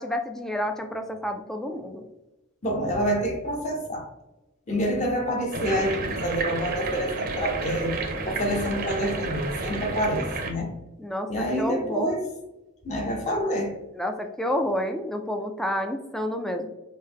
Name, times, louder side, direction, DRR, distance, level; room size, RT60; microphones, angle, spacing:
voice 1, 0.0-2.0 11.0-12.1 13.9-16.7, left 1 dB, ahead, 5 dB, 0.3 m, -29 dB
voice 2, 2.6-4.1 4.7-7.9 8.3-10.7 11.3-12.3 12.8-13.8, equal, 35° left, 2 dB, 0.8 m, -27 dB
sound 1, 5.5-10.5, right 3 dB, 45° right, 0.6 m, -31 dB
5.4 x 2.1 x 3.5 m, 0.99 s
head